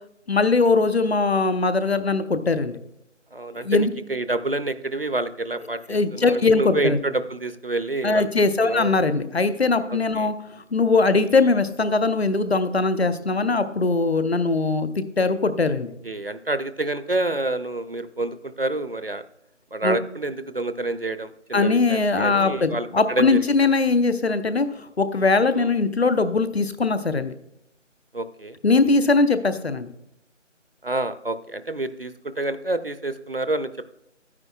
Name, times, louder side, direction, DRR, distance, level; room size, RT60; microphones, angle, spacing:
voice 1, 0.3-2.8 3.6-3.9 5.9-7.0 8.0-10.3 10.7-15.9 19.8-20.0 21.5-27.3 28.6-29.9, left 3 dB, 55° left, 12 dB, 0.8 m, -21 dB
voice 2, 3.3-8.3 8.6-9.0 9.9-10.3 16.0-19.3 19.7-23.6 25.6-25.7 28.1-28.6 30.8-33.9, right 2 dB, 50° right, 12 dB, 0.5 m, -28 dB
12.0 x 9.6 x 2.3 m, 0.80 s
figure-of-eight pair, 170°, 38 cm